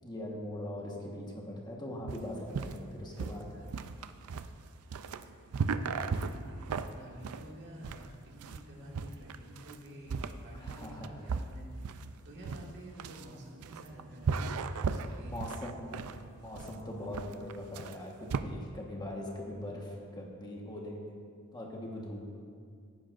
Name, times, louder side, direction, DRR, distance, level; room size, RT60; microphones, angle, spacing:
voice 1, 0.0-3.6 10.5-11.2 15.3-16.0 16.4-21.0 21.5-22.2, left 1 dB, 20° left, -1 dB, 1.3 m, -41 dB
sound 1, 2.1-18.4, right 5 dB, 75° right, 0.4 m, -37 dB
voice 2, 5.8-14.5 14.8-16.0, right 1 dB, 55° right, -3 dB, 2.0 m, -50 dB
17.0 x 9.8 x 2.5 m, 2.2 s
head